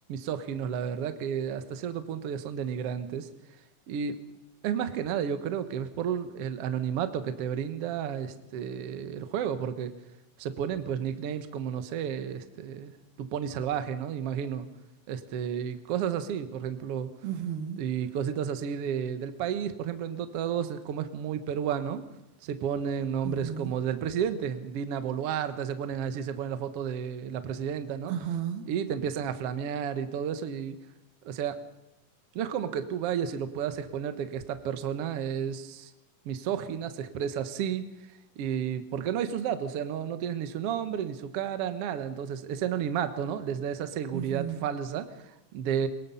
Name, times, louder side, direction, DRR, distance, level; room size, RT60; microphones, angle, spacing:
voice 1, 0.1-3.3 3.9-4.2 4.6-9.9 10.4-12.9 13.2-14.7 15.1-17.1 17.8-22.0 22.4-28.1 28.7-30.8 31.2-31.6 32.3-35.9 36.2-37.9 38.4-45.9, right 8 dB, 65° right, 10 dB, 1.5 m, -32 dB
voice 2, 17.2-17.8 23.2-23.7 28.1-28.7 44.1-44.7, right 9 dB, 90° right, 8 dB, 3.4 m, -33 dB
22.5 x 21.0 x 5.6 m, 0.90 s
omnidirectional pair, 4.2 m